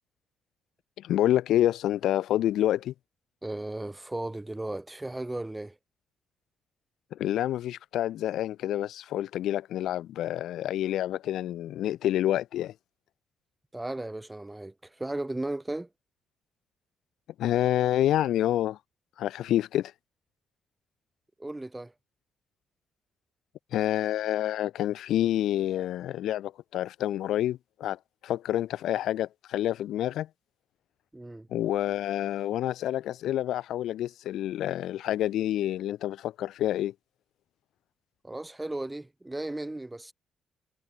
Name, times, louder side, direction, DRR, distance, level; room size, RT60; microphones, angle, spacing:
voice 1, 1.0-2.9 7.1-12.7 17.4-18.8 19.2-19.9 23.7-30.3 31.5-36.9, left 12 dB, 80° left, 1.3 m, -28 dB
voice 2, 3.4-5.7 13.7-15.9 21.4-21.9 31.1-31.5 38.2-40.1, right 2 dB, 10° right, 4.7 m, -35 dB
cardioid pair, 90°, 0 cm